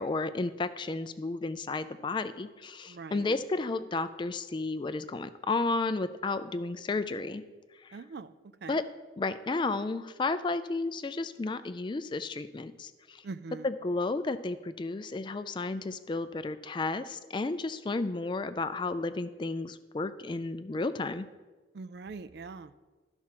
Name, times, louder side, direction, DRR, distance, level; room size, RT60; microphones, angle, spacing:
voice 1, 0.0-7.4 7.8-8.0 8.7-8.9 9.2-13.2 13.6-21.3, left 3 dB, 25° left, 12 dB, 0.3 m, -32 dB
voice 2, 2.9-3.3 7.9-8.3 8.6-8.8 13.2-13.7 21.7-22.7, right 4 dB, 60° right, 13 dB, 0.4 m, -42 dB
12.0 x 4.4 x 6.0 m, 1.3 s
head